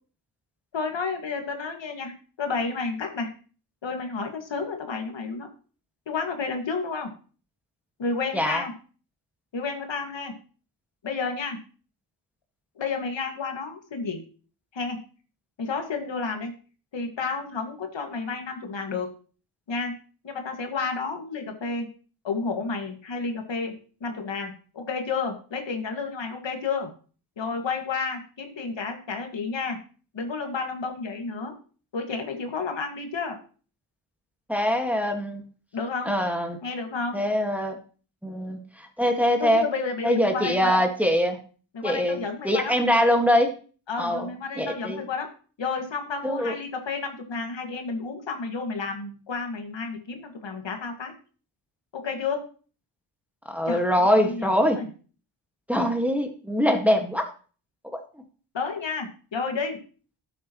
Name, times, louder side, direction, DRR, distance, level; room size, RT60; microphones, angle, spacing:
voice 1, 0.7-3.3 3.8-5.5 6.1-7.1 8.0-8.7 9.5-10.3 11.0-11.6 12.8-14.2 14.7-15.0 15.6-16.5 16.9-19.1 19.7-19.9 20.2-21.9 22.2-26.9 27.4-29.8 30.1-31.5 31.9-33.4 35.7-36.2 36.6-37.3 39.4-40.8 41.7-42.7 43.9-45.3 45.6-51.1 51.9-52.4 53.7-53.9 54.2-54.9 55.8-55.9 58.5-59.8, left 4 dB, 65° left, 4 dB, 2.1 m, -31 dB
voice 2, 8.3-8.6 34.5-35.4 36.1-36.6 37.1-37.8 38.2-39.7 40.0-41.4 41.8-43.5 44.0-44.3 44.6-45.0 46.2-46.5 53.5-54.8 55.7-57.2 57.9-58.0, equal, 5° right, 3 dB, 1.7 m, -23 dB
12.0 x 8.3 x 3.1 m, 0.39 s
cardioid pair, 65°, 47 cm